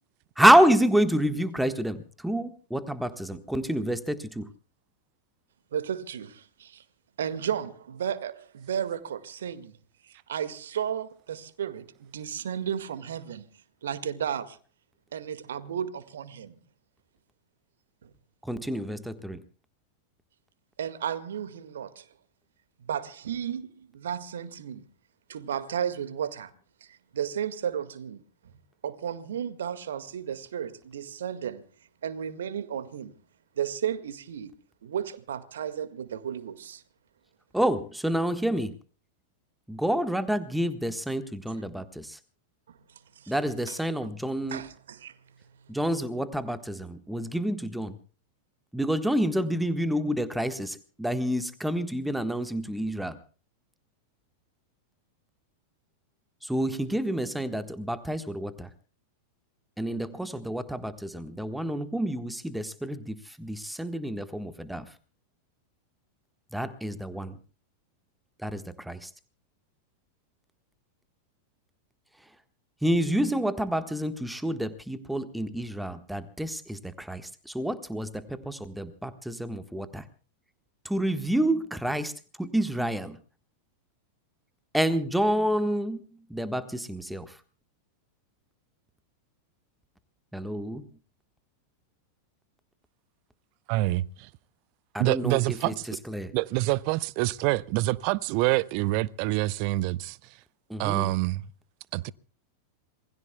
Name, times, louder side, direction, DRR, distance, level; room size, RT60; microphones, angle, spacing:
voice 1, 0.4-4.5 18.5-19.4 37.5-38.8 39.7-42.2 43.3-44.6 45.7-47.9 48.7-53.1 56.4-58.7 59.8-64.8 66.5-67.3 68.4-69.1 72.8-80.0 80.8-82.1 82.4-83.2 84.7-86.0 86.3-87.3 90.3-90.8 94.9-95.4 95.6-95.7 96.1-96.3 100.7-101.1, right 1 dB, 5° right, 1.4 m, -28 dB
voice 2, 5.7-6.8 7.2-9.7 10.0-13.4 13.8-14.6 15.1-16.6 18.0-18.1 20.8-22.1 22.8-24.9 25.3-26.5 26.8-28.5 28.8-31.6 32.0-33.1 33.6-34.5 34.8-36.8 42.7-42.8 43.2-43.3 43.7-43.8 44.5-45.2, right 8 dB, 65° right, 1.9 m, -33 dB
voice 3, 93.7-94.3 95.0-96.0 96.3-100.2 100.8-101.5 101.9-102.1, right 18 dB, 45° right, 0.8 m, -26 dB
27.0 x 21.0 x 2.3 m
figure-of-eight pair, 90°, 0 cm